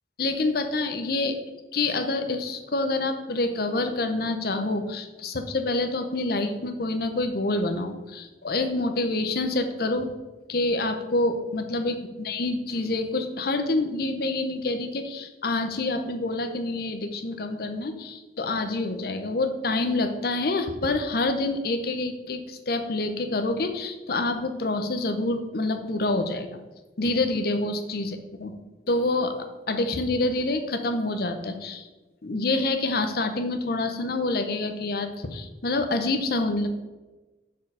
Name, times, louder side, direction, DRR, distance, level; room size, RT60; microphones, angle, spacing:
voice 1, 0.2-1.3 1.7-10.1 10.5-26.6 27.0-28.5 28.9-29.4 29.7-31.9 32.2-36.7, left 2 dB, 55° left, 7 dB, 0.7 m, -27 dB
6.3 x 4.7 x 5.5 m, 1.2 s
head